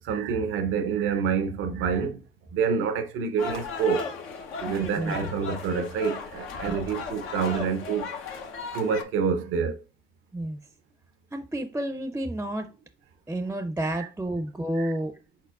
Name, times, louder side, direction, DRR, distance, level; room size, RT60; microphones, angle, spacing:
voice 1, 0.0-2.2 2.5-4.1 4.6-8.1 8.7-9.8 13.9-14.1 14.8-14.9, right 6 dB, 90° right, 0.7 m, -27 dB
sound 1, 3.4-9.0, left 5 dB, 90° left, 0.8 m, -36 dB
voice 2, 4.7-5.3 6.7-6.8 10.3-10.6 11.3-12.7 13.3-15.2, right 1 dB, 10° right, 0.4 m, -30 dB
4.5 x 4.1 x 2.4 m
cardioid pair, 90°, 20 cm